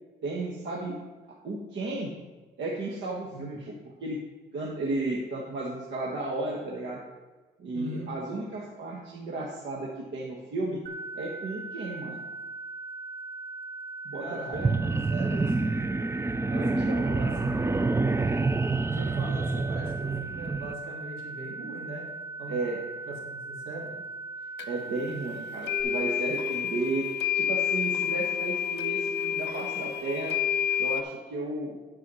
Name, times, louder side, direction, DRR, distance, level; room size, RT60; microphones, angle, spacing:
voice 1, 0.2-0.9 1.4-2.1 2.6-3.7 4.0-4.2 4.5-7.0 7.6-10.8 11.1-12.2 14.0-14.7 16.6-17.5 22.5-22.8 24.6-30.4 30.8-31.8, right 2 dB, 70° right, -3 dB, 1.5 m, -34 dB
voice 2, 7.7-8.1 14.2-15.6 16.5-17.6 18.4-22.1 22.4-22.6 23.1-23.9, right 2 dB, 85° right, -3 dB, 2.9 m, -40 dB
sound 1, 10.9-25.8, right 3 dB, 40° right, 1.3 m, -40 dB
sound 2, 14.5-20.7, right 3 dB, 15° right, 0.4 m, -27 dB
sound 3, 24.6-24.7 25.6-31.0, left 8 dB, 60° left, 0.9 m, -29 dB
11.0 x 4.8 x 5.6 m, 1.3 s
cardioid pair, 90°, 20 cm